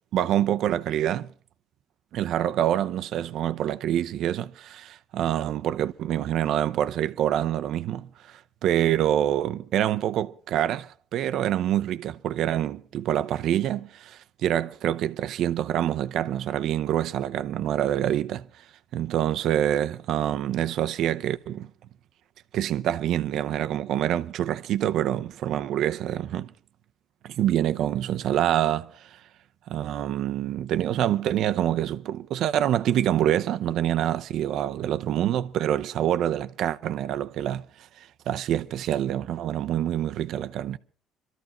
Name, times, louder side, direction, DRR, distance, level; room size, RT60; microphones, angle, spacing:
voice 1, 0.1-1.3 2.1-18.5 18.9-21.7 22.5-26.5 27.2-29.1 29.7-37.7 38.0-40.8, right 11 dB, 65° right, 0.6 m, -26 dB
26.0 x 13.5 x 3.0 m
cardioid pair, 100°, 0 cm